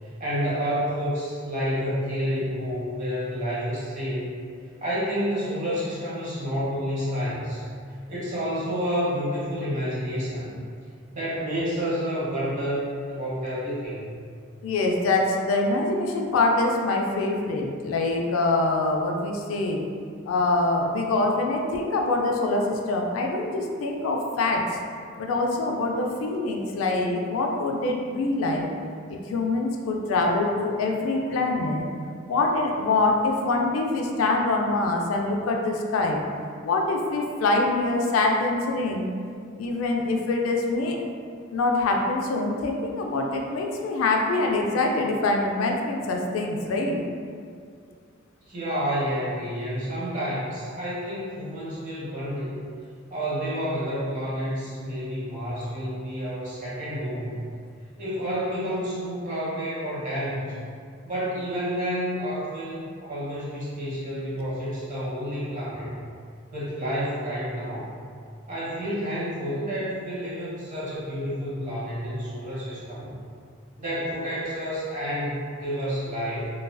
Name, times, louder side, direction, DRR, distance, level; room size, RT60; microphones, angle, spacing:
voice 1, 0.0-4.3 4.8-7.6 8.1-10.6 11.1-14.1 48.5-52.6 53.1-57.4 58.0-60.6 61.0-66.0 66.5-67.9 68.5-73.1 73.8-76.5, equal, 40° right, -8 dB, 0.8 m, -29 dB
voice 2, 14.6-19.8 20.3-24.6 25.2-28.7 29.1-31.9 32.3-36.3 36.6-39.1 39.6-41.0 41.5-47.0, left 2 dB, 80° left, 1 dB, 0.3 m, -24 dB
2.4 x 2.3 x 2.2 m, 2.1 s
head